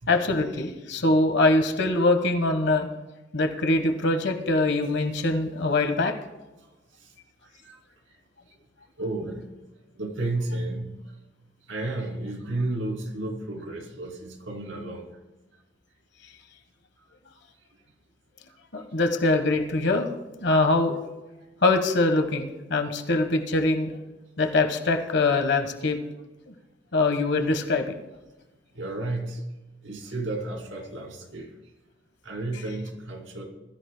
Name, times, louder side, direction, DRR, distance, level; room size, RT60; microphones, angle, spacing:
voice 1, 0.1-2.9 3.3-6.1 18.7-20.1 20.4-21.0 21.6-23.9 24.4-26.0 26.5-26.6 26.9-27.9, left 2 dB, 65° left, 6 dB, 1.3 m, -23 dB
voice 2, 7.4-7.8 8.1-8.2 9.0-9.5 9.9-11.1 11.7-15.1 28.7-29.4 29.8-31.5 32.2-33.5, right 2 dB, 90° right, 2 dB, 2.7 m, -32 dB
21.0 x 13.5 x 2.2 m, 1.1 s
head